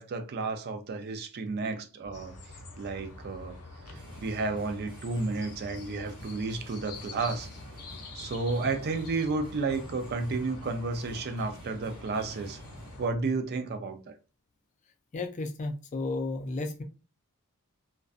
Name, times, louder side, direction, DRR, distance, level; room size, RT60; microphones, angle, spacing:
voice 1, 0.0-2.3 2.8-3.6 3.9-7.5 8.1-12.6 13.0-14.1, right 3 dB, 45° right, 0.4 m, -32 dB
sound 1, 2.0-13.2, equal, 85° right, 1.0 m, -52 dB
sound 2, 2.1-13.1, left 3 dB, 90° left, 0.5 m, -47 dB
sound 3, 3.5-13.0, right 1 dB, 20° right, 0.8 m, -51 dB
voice 2, 15.1-16.8, left 2 dB, 35° left, 0.4 m, -33 dB
2.5 x 2.2 x 2.4 m
head